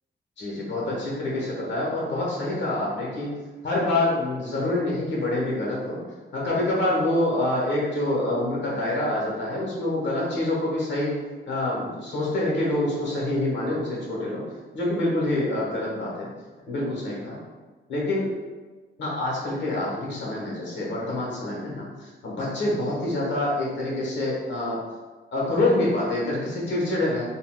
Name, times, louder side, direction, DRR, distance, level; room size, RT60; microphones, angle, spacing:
voice 1, 0.4-3.4 3.6-6.0 6.3-11.2 11.5-14.4 14.7-16.3 16.7-17.4 17.9-18.3 19.0-24.8 25.3-27.3, left 1 dB, 70° left, -4 dB, 1.1 m, -26 dB
3.7 x 2.3 x 2.3 m, 1.3 s
cardioid pair, 95°, 20 cm